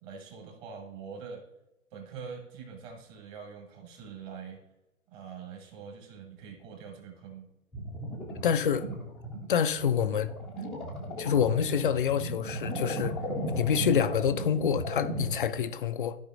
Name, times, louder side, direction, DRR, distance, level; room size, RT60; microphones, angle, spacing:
voice 1, 0.0-1.4 1.9-4.6 5.1-7.5, right 6 dB, 25° right, 1.6 m, -44 dB
sound 1, 7.7-15.6, equal, ahead, 0.7 m, -36 dB
voice 2, 8.4-8.9 9.5-10.3 11.2-13.1 13.5-16.2, left 8 dB, 40° left, 0.5 m, -27 dB
14.0 x 5.0 x 2.5 m
figure-of-eight pair, 130°, 42 cm